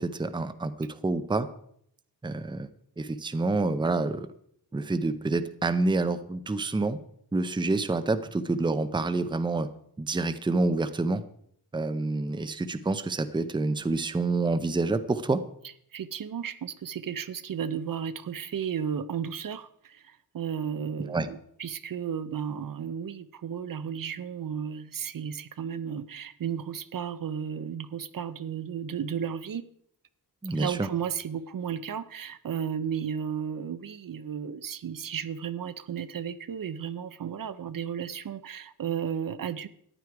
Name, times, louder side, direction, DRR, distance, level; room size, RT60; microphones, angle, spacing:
voice 1, 0.0-1.5 2.2-2.7 3.0-4.3 4.7-7.0 7.3-9.7 10.0-11.2 11.7-15.4 21.1-21.3 30.4-30.9, right 3 dB, 10° right, 11 dB, 0.6 m, -27 dB
voice 2, 15.9-29.6 30.5-39.7, right 8 dB, 60° right, 13 dB, 0.7 m, -34 dB
14.5 x 10.0 x 4.7 m, 0.68 s
wide cardioid pair, 175°, 38 cm